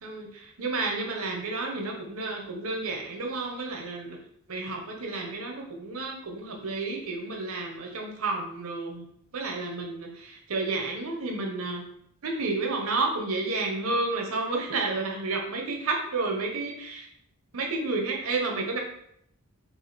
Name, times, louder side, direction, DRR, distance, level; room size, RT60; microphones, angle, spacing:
voice 1, 0.0-4.2 4.5-9.0 9.3-11.9 12.2-17.1 17.5-18.8, right 3 dB, 80° right, 1 dB, 0.9 m, -31 dB
4.8 x 2.5 x 4.1 m, 0.71 s
head